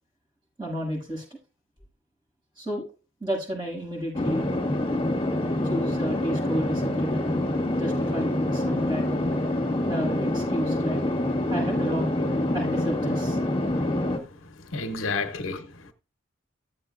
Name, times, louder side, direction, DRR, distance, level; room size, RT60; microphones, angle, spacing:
voice 1, 0.6-1.2 2.6-2.9 3.2-4.4 5.6-7.4 7.7-9.3 9.9-11.0 11.5-13.4, equal, 25° right, 6.5 m, -31 dB
sound 1, 4.1-14.2, left 1 dB, 30° left, 1.8 m, -26 dB
voice 2, 14.4-15.9, left 3 dB, 85° left, 1.0 m, -31 dB
14.5 x 7.7 x 2.5 m
head